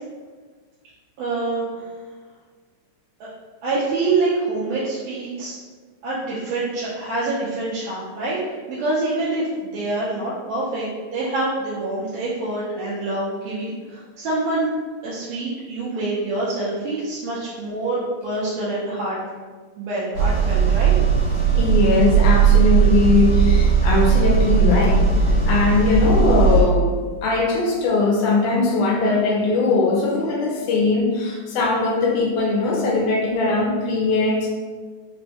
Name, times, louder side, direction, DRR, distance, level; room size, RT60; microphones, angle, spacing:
voice 1, 1.2-1.7 3.2-3.3 3.6-5.6 6.0-8.4 8.7-14.7 15.0-19.2 19.8-21.0, right 2 dB, 80° right, -8 dB, 2.1 m, -26 dB
sound 1, 20.1-26.6, right 6 dB, 55° right, 1.8 m, -17 dB
voice 2, 21.6-27.0 27.2-34.5, left 3 dB, 80° left, -2 dB, 2.0 m, -20 dB
5.3 x 2.2 x 2.8 m, 1.4 s
omnidirectional pair, 3.8 m